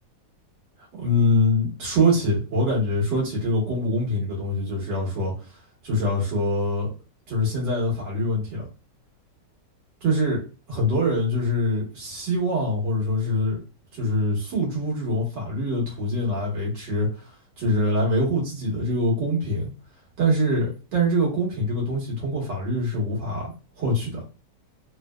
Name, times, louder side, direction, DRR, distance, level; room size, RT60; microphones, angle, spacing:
voice 1, 0.9-5.6 5.8-6.9 7.3-8.7 10.0-10.4 10.7-13.6 13.9-19.7 20.2-23.5 23.8-24.2, left 1 dB, 85° right, -4 dB, 2.1 m, -24 dB
4.3 x 2.1 x 2.3 m, 0.34 s
omnidirectional pair, 1.8 m